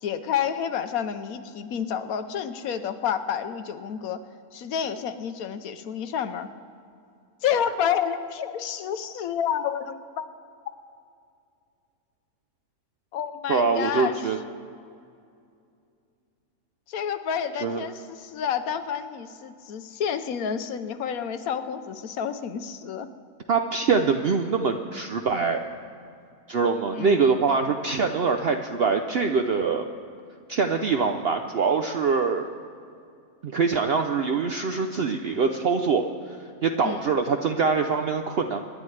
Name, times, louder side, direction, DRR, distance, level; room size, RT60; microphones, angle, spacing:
voice 1, 0.0-4.2 4.5-6.5 7.4-10.3 13.1-14.2 16.9-23.1 26.9-27.2 36.8-37.0, left 8 dB, 70° left, 9 dB, 1.1 m, -29 dB
voice 2, 13.5-14.4 17.6-17.8 23.5-25.6 26.5-29.8 30.5-32.5 33.4-38.7, right 5 dB, 65° right, 5 dB, 0.6 m, -24 dB
25.5 x 10.5 x 3.2 m, 2.4 s
omnidirectional pair, 1.6 m